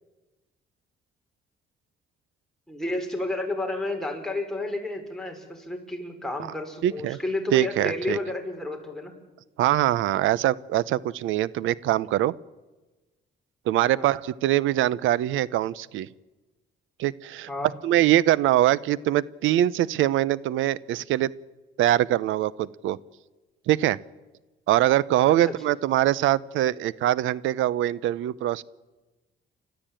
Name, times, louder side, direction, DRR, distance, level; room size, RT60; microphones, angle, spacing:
voice 1, 2.7-9.1 13.9-14.1 17.5-17.7 25.4-25.5, left 2 dB, ahead, 2 dB, 5.2 m, -31 dB
voice 2, 6.8-7.2 7.5-8.2 9.6-12.3 13.7-16.1 17.0-17.5 17.8-21.3 21.8-23.0 23.7-24.0 24.7-28.6, right 13 dB, 85° right, 21 dB, 0.7 m, -23 dB
29.5 x 13.5 x 9.0 m, 1.2 s
cardioid pair, 90°, 20 cm